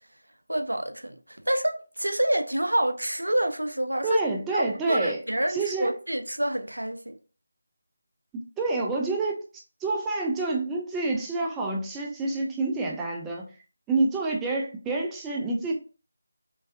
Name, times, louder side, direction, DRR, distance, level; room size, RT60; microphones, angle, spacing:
voice 1, 0.5-4.2 4.5-7.2, right 1 dB, 75° right, 0.4 m, -27 dB
voice 2, 4.0-5.2 5.5-5.9 8.3-9.4 9.8-13.5 13.9-15.7, right 3 dB, 10° right, 0.3 m, -28 dB
3.8 x 2.4 x 2.5 m
figure-of-eight pair, 160°, 0 cm